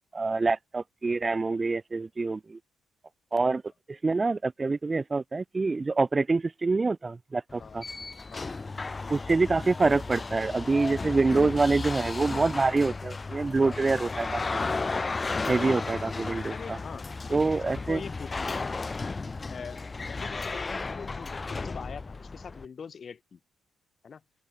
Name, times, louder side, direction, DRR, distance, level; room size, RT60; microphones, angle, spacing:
voice 1, 0.1-2.6 3.3-3.6 3.9-7.8 9.1-14.6 15.5-16.8 17.3-18.0, right 3 dB, 25° right, 0.7 m, -26 dB
sound 1, 7.5-22.6, left 3 dB, 25° left, 0.7 m, -34 dB
voice 2, 16.5-18.8 19.5-23.4 24.0-24.2, left 6 dB, 45° left, 8.0 m, -43 dB
open air
cardioid pair, 90°, 0 cm